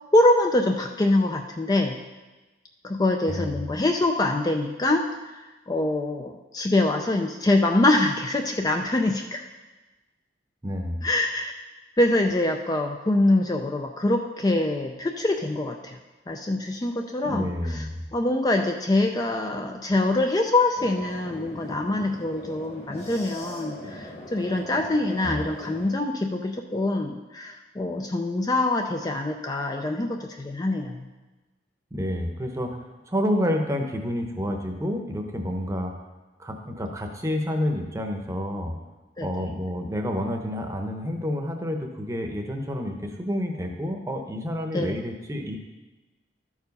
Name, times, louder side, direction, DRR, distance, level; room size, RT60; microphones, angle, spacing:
voice 1, 0.1-2.0 2.8-9.4 11.0-11.5 12.0-16.0 16.3-17.9 18.1-31.1 39.2-39.3 44.7-45.0, left 2 dB, 20° left, 3 dB, 0.4 m, -24 dB
voice 2, 10.6-11.0 17.2-18.0 25.2-25.4 31.9-32.8 33.1-35.9 36.4-38.8 39.2-45.6, equal, 15° right, 3 dB, 0.8 m, -29 dB
sound 1, 20.7-25.9, equal, 35° left, 1.5 m, -40 dB
12.5 x 4.8 x 5.3 m, 1.2 s
head